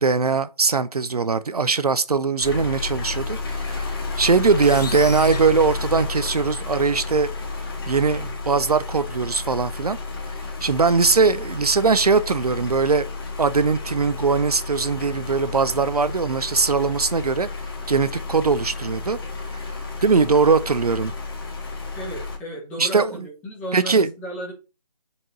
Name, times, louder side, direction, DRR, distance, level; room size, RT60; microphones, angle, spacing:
voice 1, 0.0-7.3 7.9-10.0 10.6-13.1 13.4-17.5 17.9-19.2 20.0-21.1 22.8-23.2 23.7-24.1, right 4 dB, 65° right, 0.5 m, -20 dB
sound 1, 2.4-22.4, left 3 dB, 35° left, 1.5 m, -31 dB
sound 2, 4.6-6.6, left 5 dB, 70° left, 0.5 m, -36 dB
voice 2, 21.9-24.5, right 1 dB, 5° left, 1.0 m, -34 dB
5.3 x 4.8 x 4.0 m
figure-of-eight pair, 150°, 21 cm